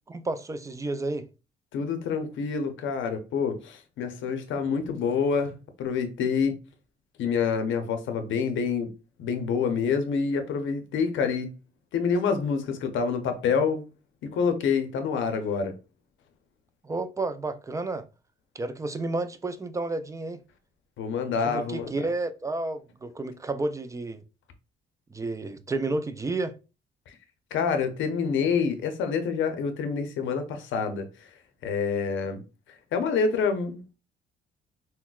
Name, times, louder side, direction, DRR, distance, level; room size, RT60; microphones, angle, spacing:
voice 1, 0.1-1.3 16.8-18.0 18.6-20.4 21.4-24.2 25.1-26.6, right 2 dB, 15° right, 0.3 m, -31 dB
voice 2, 1.7-6.5 7.2-8.9 9.2-11.5 11.9-13.8 14.3-15.7 21.0-21.9 27.1-27.2 27.5-31.1 31.6-32.4 32.9-33.9, left 5 dB, 75° left, 0.6 m, -27 dB
3.8 x 2.1 x 2.3 m
cardioid pair, 90°, 20 cm